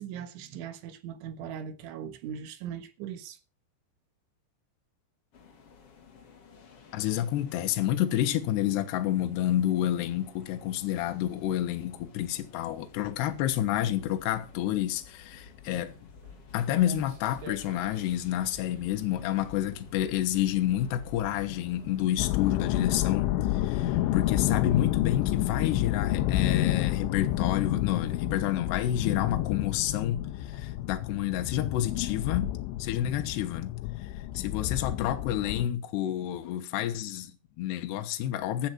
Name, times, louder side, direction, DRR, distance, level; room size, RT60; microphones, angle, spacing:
voice 1, 0.0-3.4 30.5-30.6, right 8 dB, 80° right, 3.8 m, -39 dB
sound 1, 5.3-23.2, left 5 dB, 45° left, 2.3 m, -51 dB
voice 2, 6.9-16.0 16.5-32.5 32.8-38.7, left 12 dB, 70° left, 3.1 m, -29 dB
Walk footsteps, 15.7-25.2, right 5 dB, 60° right, 4.0 m, -53 dB
sound 2, 22.2-35.7, left 14 dB, 90° left, 3.3 m, -29 dB
15.5 x 10.5 x 4.5 m
omnidirectional pair, 5.4 m